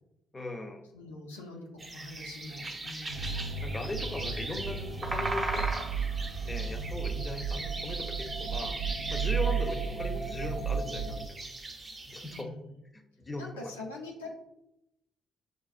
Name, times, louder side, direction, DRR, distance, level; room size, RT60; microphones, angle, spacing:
voice 1, 0.3-0.9 3.6-5.7 6.4-8.8 9.1-11.4 12.1-12.5 12.9-13.7, left 2 dB, 25° left, 5 dB, 0.6 m, -38 dB
voice 2, 0.9-3.4 12.2-12.7 13.4-14.4, left 2 dB, 80° left, -1 dB, 0.6 m, -44 dB
sound 1, 1.8-12.4, right 2 dB, 30° right, 0.7 m, -39 dB
sound 2, 3.1-11.3, right 5 dB, 70° right, 0.3 m, -34 dB
5.9 x 2.3 x 2.4 m, 0.86 s
figure-of-eight pair, 40°, 0 cm